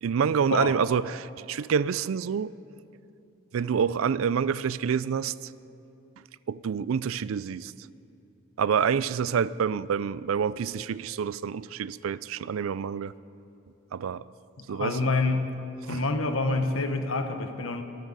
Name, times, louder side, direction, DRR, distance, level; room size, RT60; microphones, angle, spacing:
voice 1, 0.0-2.5 3.5-5.5 6.5-7.7 8.6-13.1 13.9-14.2 14.7-15.1 15.8-16.0, right 7 dB, 80° right, 0.4 m, -27 dB
voice 2, 14.7-15.6 15.9-17.8, left 3 dB, 85° left, 1.2 m, -27 dB
24.0 x 13.5 x 4.0 m
head